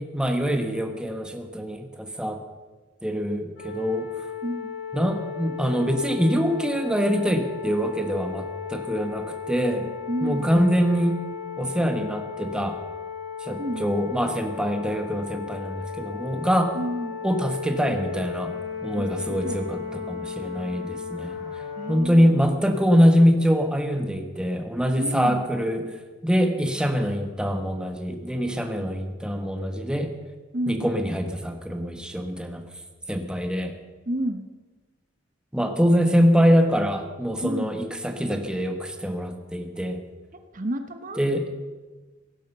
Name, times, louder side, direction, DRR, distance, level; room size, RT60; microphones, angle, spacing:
voice 1, 0.0-2.4 3.0-4.1 4.9-9.9 10.2-11.2 11.6-12.8 13.4-16.7 17.2-18.5 18.8-21.4 21.9-25.9 26.2-30.1 30.7-32.6 33.1-33.7 35.5-40.0 41.2-41.5, equal, 5° right, 5 dB, 1.3 m, -24 dB
sound 1, 3.6-22.0, left 6 dB, 85° left, 5.8 m, -35 dB
voice 2, 4.4-4.7 10.1-10.5 13.6-13.9 16.7-17.2 19.0-19.1 19.4-19.6 21.8-22.6 25.0-25.4 30.5-30.9 34.1-34.5 37.4-37.7 40.5-41.2, equal, 45° right, 7 dB, 1.0 m, -30 dB
17.0 x 10.5 x 6.7 m, 1.3 s
head